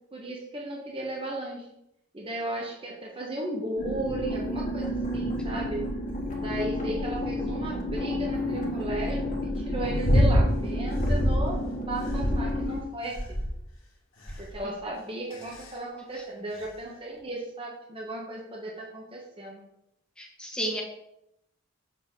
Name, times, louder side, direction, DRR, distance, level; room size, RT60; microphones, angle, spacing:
voice 1, 0.1-1.7 2.1-5.9 6.4-13.4 14.4-19.6, right 1 dB, 25° right, -2 dB, 1.3 m, -35 dB
sound 1, 3.8-12.8, left 1 dB, 35° left, 1.8 m, -31 dB
sound 2, 10.0-10.5 10.9-11.5 12.0-12.7 13.2-13.6 14.3-14.6 15.3-15.7 16.6-16.7, equal, 70° left, 1.8 m, -24 dB
voice 2, 20.2-20.8, equal, 5° left, -1 dB, 1.5 m, -32 dB
6.9 x 4.5 x 6.3 m, 0.81 s
head